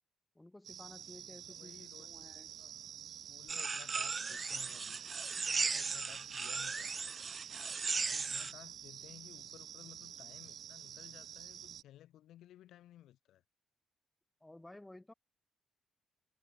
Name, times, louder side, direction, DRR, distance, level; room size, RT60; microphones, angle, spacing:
voice 1, 0.4-2.5 5.4-5.5 14.4-15.1, left 1 dB, 10° left, 2.3 m, -55 dB
sound 1, 0.6-11.8, right 9 dB, 65° right, 2.0 m, -49 dB
voice 2, 1.5-2.2 2.6-5.0 5.4-7.5 8.0-13.4, left 13 dB, 80° left, 5.6 m, -58 dB
sound 2, 3.5-8.5, right 4 dB, 35° right, 1.3 m, -37 dB
cardioid pair, 90°, 0 cm